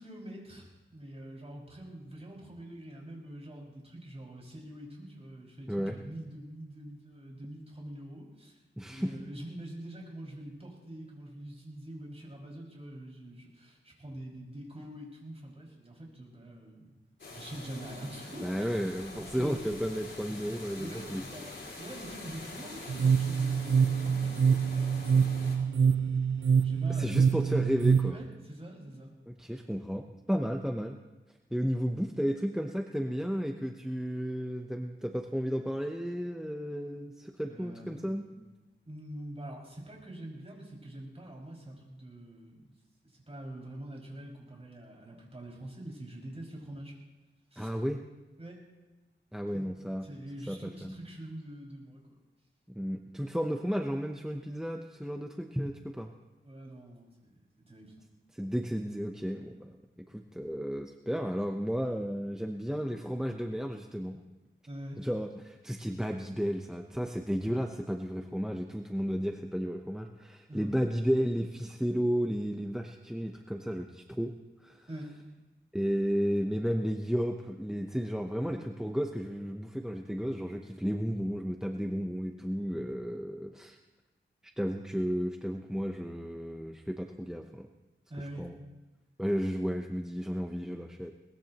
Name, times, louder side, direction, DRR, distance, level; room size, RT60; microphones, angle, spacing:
voice 1, 0.0-8.6 8.9-16.9 17.4-18.7 19.1-19.6 20.8-26.0 26.6-27.5 28.1-29.1 37.4-38.3 38.9-42.6 43.0-46.9 47.5-47.8 48.4-48.6 49.5-49.7 50.0-52.2 56.4-57.9 64.7-65.0 70.5-70.7 74.9-75.1 88.1-88.5, right 1 dB, 30° right, -2 dB, 5.8 m, -45 dB
voice 2, 8.8-9.1 18.4-21.2 26.9-28.2 29.3-31.0 31.5-38.2 47.6-48.0 49.3-50.1 50.5-50.9 52.7-56.1 58.3-59.8 60.1-64.2 65.0-74.3 74.6-74.9 75.7-83.8 84.6-87.7 88.4-88.5 89.2-91.1, equal, 5° right, 4 dB, 0.9 m, -33 dB
sound 1, 17.2-25.6, left 2 dB, 70° left, 4.4 m, -45 dB
sound 2, 22.9-28.1, right 6 dB, 80° right, 0.6 m, -25 dB
22.0 x 20.0 x 3.0 m, 1.1 s
wide cardioid pair, 90°, 20 cm